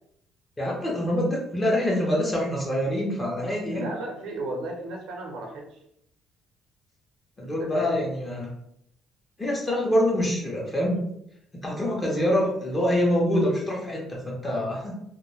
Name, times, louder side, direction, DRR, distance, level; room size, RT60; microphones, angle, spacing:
voice 1, 0.6-3.9 7.4-8.5 9.4-11.0 11.5-14.9, left 1 dB, 15° left, -2 dB, 0.5 m, -25 dB
voice 2, 3.7-5.8 7.4-8.0, right 2 dB, 90° right, 0 dB, 0.6 m, -35 dB
2.2 x 2.1 x 3.0 m, 0.75 s
cardioid pair, 155°, 0 cm